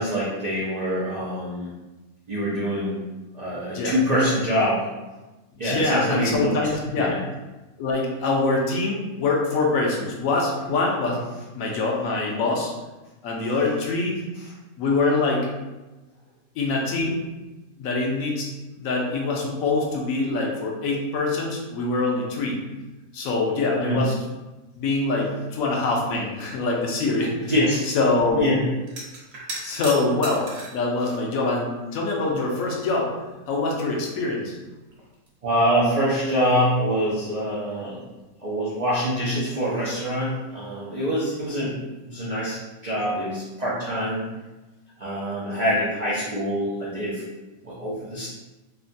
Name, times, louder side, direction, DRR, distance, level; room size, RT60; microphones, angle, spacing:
voice 1, 0.0-1.7 2.3-3.0 3.3-4.9 5.6-6.6 7.0-7.2 23.8-24.0 27.4-27.9 28.4-28.6 35.4-38.0 38.4-41.8 42.1-44.2 45.0-47.2 47.6-48.3, equal, 80° right, -8 dB, 0.3 m, -25 dB
voice 2, 5.6-7.2 7.8-11.3 11.5-12.7 13.2-14.1 14.8-15.5 16.6-17.2 17.8-18.5 18.8-22.6 23.1-24.1 24.8-27.5 27.9-28.6 29.6-33.1 33.5-34.5, left 3 dB, 75° left, -1 dB, 1.0 m, -24 dB
sound 1, 28.8-30.9 31.7-32.5 32.8-32.9 34.2-34.3 34.6-35.7 39.3-39.5 39.8-40.0, right 2 dB, 55° right, 0.9 m, -38 dB
3.2 x 2.1 x 2.5 m, 1.1 s
omnidirectional pair, 1.5 m